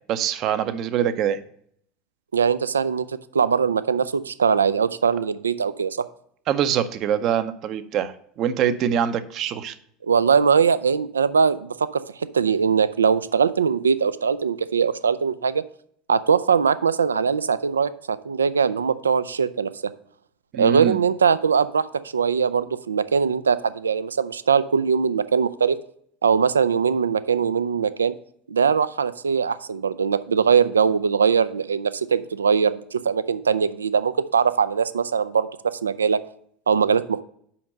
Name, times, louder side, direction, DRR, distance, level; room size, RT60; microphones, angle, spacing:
voice 1, 0.1-1.4 6.5-9.7 20.5-21.0, right 9 dB, 50° right, 12 dB, 0.7 m, -24 dB
voice 2, 2.3-3.1 3.3-6.1 10.0-15.6 16.1-19.7 20.6-21.9 22.1-25.8 26.2-28.1 28.5-36.2 36.7-37.2, right 6 dB, 90° right, 15 dB, 0.3 m, -21 dB
5.7 x 5.3 x 6.5 m, 0.65 s
hypercardioid pair, 80°, 0 cm